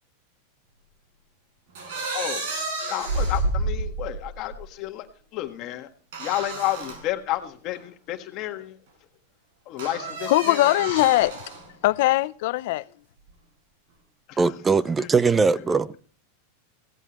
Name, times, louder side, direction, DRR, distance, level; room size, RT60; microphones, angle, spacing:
sound 1, 1.7-4.6 6.1-7.0 7.7-7.8 9.8-11.7, right 2 dB, 70° right, 6.5 m, -30 dB
voice 1, 2.1-2.5 2.9-5.1 5.3-5.9 6.2-8.8 9.7-10.6 14.3-14.4 15.0-15.1, left 15 dB, 40° left, 1.5 m, -31 dB
voice 2, 10.3-11.3 11.8-12.8, left 18 dB, 65° left, 0.6 m, -20 dB
voice 3, 14.4-15.9, right 4 dB, 15° right, 0.6 m, -21 dB
16.5 x 13.5 x 3.1 m
supercardioid pair, 145°, 0 cm